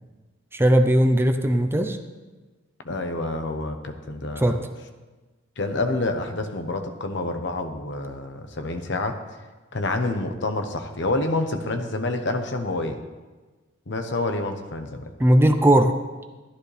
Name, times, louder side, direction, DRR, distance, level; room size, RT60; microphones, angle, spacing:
voice 1, 0.5-2.0 4.4-4.6 15.2-15.9, right 1 dB, 10° right, 6 dB, 0.6 m, -18 dB
voice 2, 2.8-4.6 5.6-9.2 9.7-13.0 13.9-15.1, left 2 dB, 60° left, 6 dB, 1.0 m, -28 dB
13.5 x 11.5 x 3.3 m, 1.3 s
head